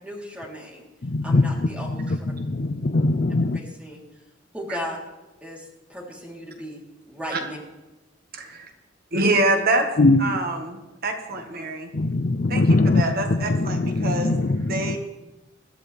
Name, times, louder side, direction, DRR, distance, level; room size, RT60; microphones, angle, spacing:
voice 1, 0.0-0.9 1.2-2.3 3.8-4.0 4.5-5.0 5.4-6.8 7.1-7.6, equal, 5° right, -3 dB, 3.5 m, -36 dB
voice 2, 1.0-3.6 10.0-10.4 11.9-15.0, left 2 dB, 45° left, 10 dB, 0.5 m, -22 dB
voice 3, 9.1-9.9 10.2-11.9 12.5-12.6 13.0-14.3 14.7-15.0, right 2 dB, 50° right, 3 dB, 1.7 m, -25 dB
21.0 x 13.5 x 3.5 m, 1.0 s
head